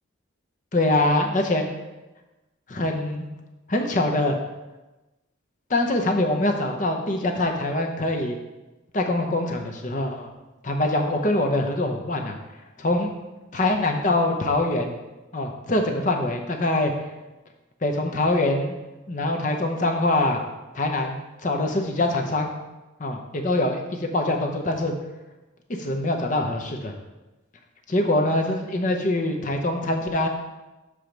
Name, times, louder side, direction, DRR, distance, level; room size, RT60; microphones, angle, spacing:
voice 1, 0.7-1.6 2.7-3.3 3.7-4.4 5.7-8.4 8.9-10.3 10.6-12.4 12.8-13.1 13.5-15.0 15.3-16.9 17.8-18.8 19.1-20.4 20.7-22.5 23.0-24.9 25.7-26.9 27.9-30.3, left 2 dB, 40° left, 3 dB, 0.8 m, -24 dB
5.9 x 4.9 x 5.2 m, 1.1 s
head